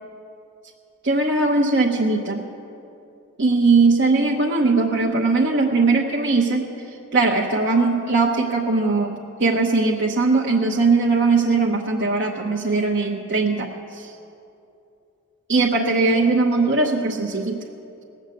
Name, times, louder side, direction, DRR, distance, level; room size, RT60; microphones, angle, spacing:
voice 1, 1.0-2.4 3.4-14.1 15.5-17.6, right 3 dB, 55° right, 0 dB, 0.9 m, -20 dB
18.5 x 7.3 x 8.3 m, 2.7 s
head